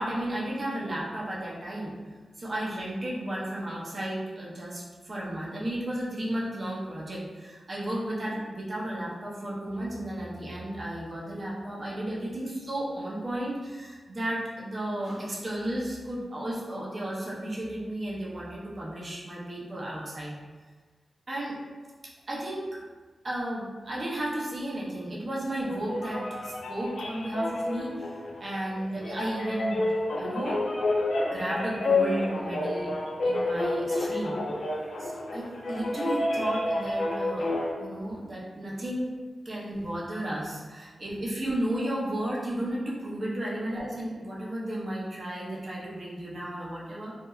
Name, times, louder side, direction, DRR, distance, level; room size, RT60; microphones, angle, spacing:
voice 1, 0.0-1.9 2.4-20.3 21.3-21.6 22.3-22.8 23.2-28.1 28.4-29.8 30.2-30.6 31.3-32.9 33.2-34.4 35.0-37.5 37.8-39.1 39.4-47.1, right 1 dB, 35° right, -5 dB, 0.5 m, -33 dB
sound 1, 25.6-37.7, left 2 dB, 85° left, 0.4 m, -29 dB
2.7 x 2.1 x 2.2 m, 1.4 s
wide cardioid pair, 155°, 0 cm